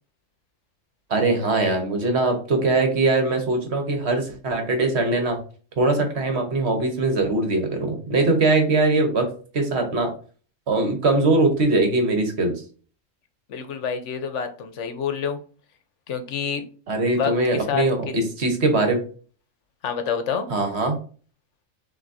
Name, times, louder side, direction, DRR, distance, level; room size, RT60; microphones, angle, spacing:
voice 1, 1.1-5.4 5.8-10.1 10.7-12.5 16.9-19.0 20.5-21.0, right 2 dB, 55° right, 4 dB, 1.2 m, -21 dB
voice 2, 13.5-15.4 16.1-16.6 17.1-17.8 19.8-20.5, left 7 dB, 70° left, 8 dB, 0.9 m, -27 dB
5.9 x 2.7 x 2.6 m, 0.40 s
omnidirectional pair, 1.3 m